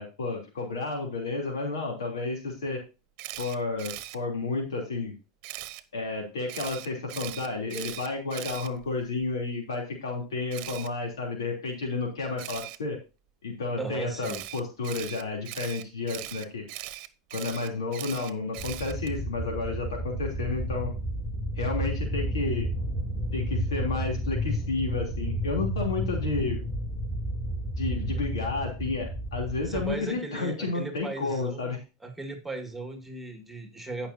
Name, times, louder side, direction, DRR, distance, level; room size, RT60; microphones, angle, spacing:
voice 1, 0.0-2.8 3.4-5.1 5.9-13.0 13.4-16.6 17.3-20.9 21.6-22.7 23.3-26.6 27.8-31.8, left 3 dB, 90° left, 1 dB, 3.2 m, -31 dB
Camera, 3.2-4.2 5.4-5.8 6.5-9.3 10.5-10.9 12.4-12.8 14.2-19.2, right 16 dB, 55° right, 1.0 m, -40 dB
voice 2, 13.8-14.4 29.6-31.7 32.0-34.1, right 2 dB, 5° right, 4 dB, 2.0 m, -37 dB
sound 1, 18.6-30.0, equal, 10° left, 3.2 m, -31 dB
16.0 x 5.8 x 2.8 m, 0.29 s
hypercardioid pair, 100°, 2 cm